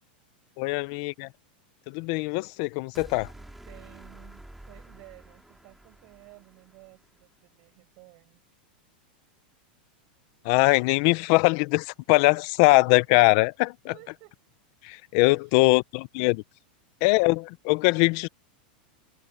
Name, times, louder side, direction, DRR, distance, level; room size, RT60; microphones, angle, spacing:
voice 1, 0.6-1.3 1.9-3.3 10.4-13.7 14.8-16.4 17.0-18.3, left 25 dB, 35° left, 0.4 m, -22 dB
sound 1, 2.9-7.2, right 1 dB, ahead, 3.0 m, -49 dB
voice 2, 3.0-8.4 12.4-12.5 13.8-14.4 15.4-15.6, right 32 dB, 40° right, 6.4 m, -53 dB
supercardioid pair, 175°, 5 cm